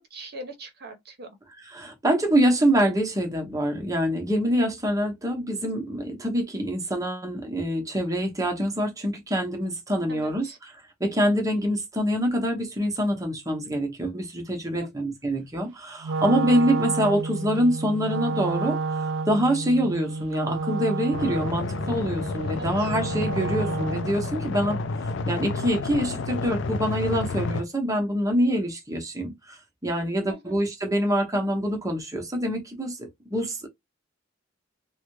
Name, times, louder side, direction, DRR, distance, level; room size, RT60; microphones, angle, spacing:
voice 1, 0.1-1.4 10.1-10.6 14.7-15.1 22.5-22.9 30.3-30.6, right 1 dB, 55° right, 0.8 m, -41 dB
voice 2, 1.7-10.7 11.0-24.8 25.2-33.7, equal, 20° right, 0.9 m, -25 dB
Wind instrument woodwind instrument, 16.0-24.2, right 3 dB, 90° right, 0.3 m, -30 dB
sound 1, 21.1-27.6, left 3 dB, 65° left, 0.4 m, -30 dB
3.4 x 2.2 x 3.1 m
head